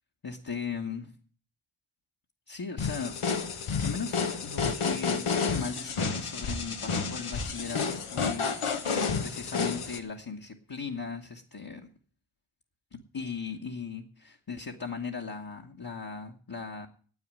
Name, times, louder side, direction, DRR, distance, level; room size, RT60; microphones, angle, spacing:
voice 1, 0.2-1.1 2.5-3.1 3.5-11.9 13.1-16.9, left 5 dB, 45° left, -1 dB, 1.5 m, -38 dB
sound 1, 2.8-10.0, left 5 dB, 85° left, 1.2 m, -30 dB
9.7 x 8.6 x 9.1 m, 0.43 s
cardioid pair, 45°, 49 cm